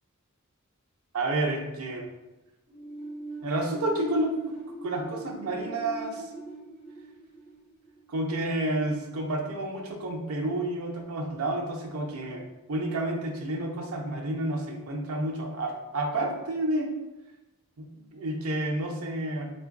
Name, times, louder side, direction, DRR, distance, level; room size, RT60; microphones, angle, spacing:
voice 1, 1.1-2.1 3.4-6.3 8.1-12.4 12.7-16.9 17.8-19.5, right 1 dB, 80° right, 2 dB, 0.6 m, -30 dB
sound 1, 2.7-8.3, right 2 dB, 25° right, 1.2 m, -41 dB
4.3 x 2.5 x 2.3 m, 1.0 s
head